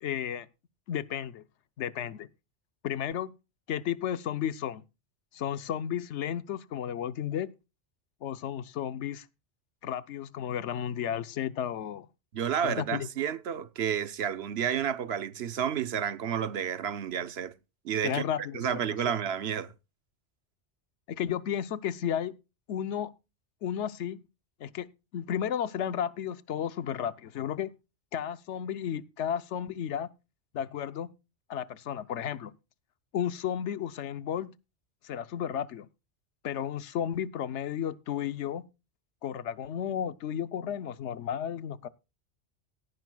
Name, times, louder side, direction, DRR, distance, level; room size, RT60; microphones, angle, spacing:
voice 1, 0.0-0.5 0.9-1.4 1.8-2.3 2.8-3.3 3.7-4.8 5.3-7.5 8.2-9.3 9.8-12.1 12.6-13.1 18.0-18.8 21.1-22.4 22.7-23.1 23.6-24.2 24.6-24.9 25.1-27.7 28.1-30.1 30.5-31.1 31.5-32.5 33.1-34.5 35.0-35.9 36.4-38.6 39.2-41.9, left 9 dB, 85° left, 1.0 m, -33 dB
voice 2, 12.3-17.5 17.8-18.3 18.5-19.7, right 8 dB, 65° right, 1.0 m, -31 dB
17.5 x 10.5 x 2.3 m
omnidirectional pair, 1.2 m